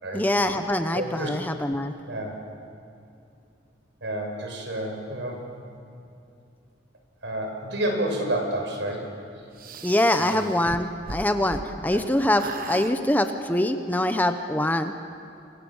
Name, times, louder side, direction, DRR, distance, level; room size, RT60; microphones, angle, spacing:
voice 1, 0.1-1.9 9.8-14.9, left 1 dB, 10° left, 7 dB, 0.9 m, -24 dB
voice 2, 0.9-1.3 2.1-2.3 4.0-5.4 7.2-9.1 10.2-10.4 11.9-12.0, right 1 dB, 70° right, 2 dB, 5.7 m, -29 dB
sound 1, 9.6-12.0 12.3-12.9, right 3 dB, 50° right, 1.1 m, -38 dB
29.0 x 24.5 x 7.2 m, 2.5 s
head